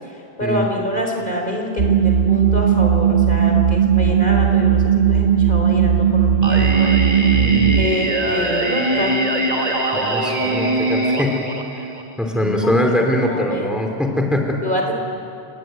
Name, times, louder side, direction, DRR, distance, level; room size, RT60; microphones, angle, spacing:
voice 1, 0.1-7.0 7.7-9.1 12.3-13.7 14.6-14.9, equal, 45° left, 1 dB, 4.3 m, -26 dB
sound 1, 1.8-7.9, right 8 dB, 55° right, 1.4 m, -16 dB
Singing, 6.4-12.4, right 1 dB, 35° right, 2.2 m, -22 dB
voice 2, 7.3-8.3 9.9-11.4 12.2-14.6, left 1 dB, ahead, 2 dB, 2.8 m, -22 dB
30.0 x 20.0 x 9.2 m, 2.7 s
omnidirectional pair, 1.2 m